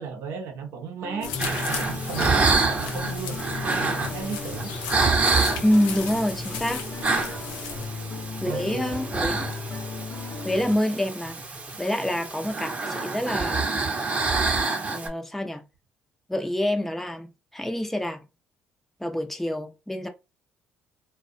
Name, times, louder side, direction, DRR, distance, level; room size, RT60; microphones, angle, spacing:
voice 1, 0.0-3.4 3.6-4.7 7.7-8.0 8.5-9.1 12.0-12.2, right 6 dB, 75° right, 0.6 m, -36 dB
sound 1, 1.0-10.8, left 3 dB, 40° left, 0.8 m, -36 dB
sound 2, 1.2-7.9, left 7 dB, 90° left, 0.5 m, -36 dB
sound 3, 1.4-15.1, right 3 dB, 35° right, 0.8 m, -27 dB
voice 2, 5.6-6.9 8.4-9.5 10.4-11.4 11.8-13.9 14.9-15.6 16.3-18.2 19.0-20.1, left 1 dB, 5° left, 0.5 m, -27 dB
2.4 x 2.2 x 2.5 m
supercardioid pair, 60°, 4 cm